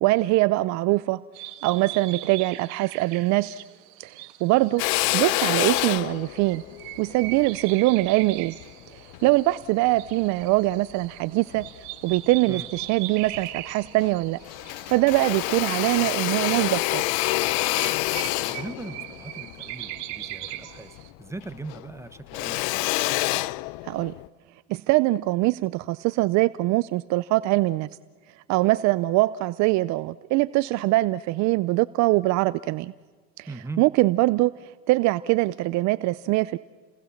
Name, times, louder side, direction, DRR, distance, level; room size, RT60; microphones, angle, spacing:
voice 1, 0.0-1.2 1.6-3.6 4.0-4.8 5.1-6.6 7.0-8.6 9.2-11.6 12.0-17.0 23.8-24.1 24.7-27.9 28.5-32.9 33.4-33.5 33.8-34.5 34.9-36.6, right 20 dB, 60° right, 17 dB, 0.6 m, -23 dB
sound 1, 1.3-21.1, right 17 dB, 75° right, 1.8 m, -41 dB
Drill, 4.8-9.3 9.9-11.1 11.5-12.4 12.8-12.9 13.2-14.2 14.4-21.1 21.4-24.3, left 21 dB, 70° left, 0.7 m, -28 dB
voice 2, 18.0-23.0 33.5-33.9, right 3 dB, 10° right, 11 dB, 1.3 m, -40 dB
30.0 x 20.0 x 7.3 m, 1.4 s
supercardioid pair, 110°, 32 cm